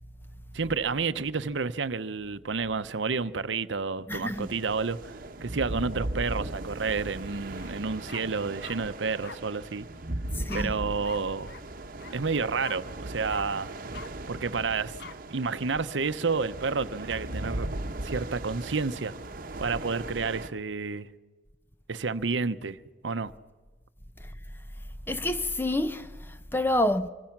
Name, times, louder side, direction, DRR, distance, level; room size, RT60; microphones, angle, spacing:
voice 1, 0.5-9.9 10.5-11.5 12.1-13.7 14.3-15.0 15.3-17.7 18.0-19.1 19.6-21.1 21.9-22.8 23.0-23.3, right 4 dB, 80° right, 0.8 m, -30 dB
voice 2, 4.1-4.5 10.3-10.8 24.2-24.3 25.1-27.1, left 1 dB, 10° left, 0.8 m, -28 dB
sound 1, 4.1-20.5, right 1 dB, 50° right, 1.1 m, -38 dB
sound 2, 7.6-7.7 8.1-8.8 9.2-9.4 10.5-10.7 11.0-11.2 11.5-11.6 12.0-12.1 12.6-12.8 13.3-13.4 13.9-14.1 15.0-15.1, left 5 dB, 60° left, 0.9 m, -42 dB
26.0 x 24.5 x 6.0 m
head